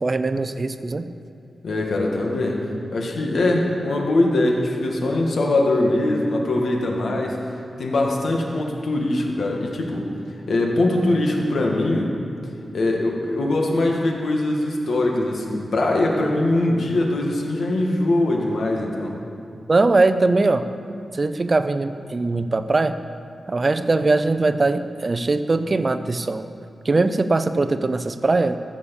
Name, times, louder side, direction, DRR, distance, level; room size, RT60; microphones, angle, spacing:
voice 1, 0.0-1.1 19.7-20.6 21.1-22.9 23.5-26.4 26.9-28.7, right 3 dB, 35° right, 11 dB, 0.6 m, -21 dB
voice 2, 1.6-2.6 2.9-7.4 7.8-10.1 10.5-12.1 12.7-19.2, left 2 dB, 75° left, 0 dB, 1.9 m, -22 dB
14.0 x 6.9 x 7.1 m, 2.6 s
wide cardioid pair, 100°, 0 cm